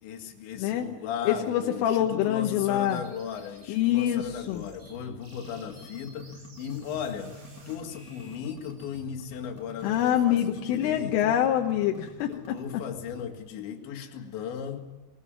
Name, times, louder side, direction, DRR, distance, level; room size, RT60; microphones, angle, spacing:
voice 1, 0.0-7.4 7.7-11.4 12.3-14.8, left 8 dB, 70° left, 4 dB, 4.1 m, -36 dB
voice 2, 1.3-3.0 3.7-4.6 9.8-12.3, left 11 dB, 85° left, 3 dB, 3.6 m, -25 dB
sound 1, 2.8-4.9 5.2-10.2, right 2 dB, 60° right, 8.2 m, -54 dB
sound 2, 4.8-13.3, left 1 dB, 40° left, 1.2 m, -47 dB
20.5 x 19.5 x 8.9 m, 1.1 s
omnidirectional pair, 5.7 m